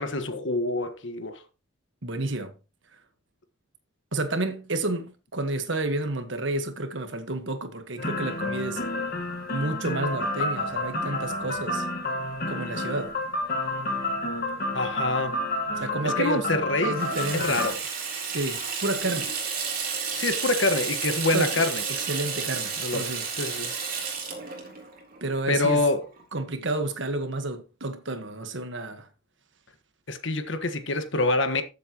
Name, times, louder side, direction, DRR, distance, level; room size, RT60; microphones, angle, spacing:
voice 1, 0.0-1.4 14.7-15.4 16.0-16.9 17.3-17.8 20.1-21.8 22.8-23.7 25.5-26.0 30.1-31.6, left 2 dB, 65° left, 1.5 m, -26 dB
voice 2, 2.0-2.5 4.1-8.8 9.5-11.9 12.5-13.1 15.8-16.5 16.8-17.8 18.2-19.3 21.3-21.5 22.0-23.2 25.2-25.8 26.3-29.1, right 2 dB, 65° right, 1.5 m, -30 dB
sound 1, 8.0-17.7, left 2 dB, 45° left, 1.5 m, -30 dB
Water tap faucet / Sink (filling or washing), 16.9-26.2, right 5 dB, 45° right, 3.4 m, -32 dB
13.5 x 7.7 x 3.0 m
head